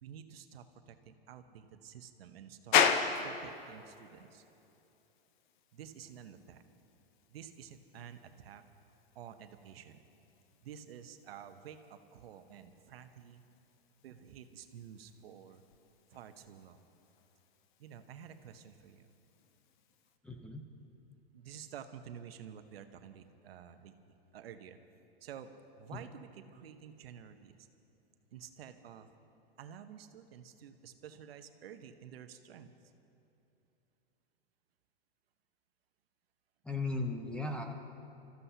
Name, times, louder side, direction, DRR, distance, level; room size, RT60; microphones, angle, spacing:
voice 1, 0.0-2.8 3.2-4.4 5.7-6.6 7.3-8.6 9.1-10.0 10.6-13.4 14.0-15.6 16.1-16.8 17.8-19.1 21.3-23.9 24.3-24.8 25.2-27.6 28.3-29.1 29.6-32.7, right 8 dB, 75° right, 8 dB, 1.0 m, -51 dB
sound 1, 2.7-20.2, left 7 dB, 50° left, 0.9 m, -39 dB
voice 2, 20.2-20.6 36.6-37.6, left 3 dB, 5° left, 2 dB, 0.6 m, -36 dB
28.5 x 14.5 x 2.8 m, 2.9 s
hypercardioid pair, 145°, 30 cm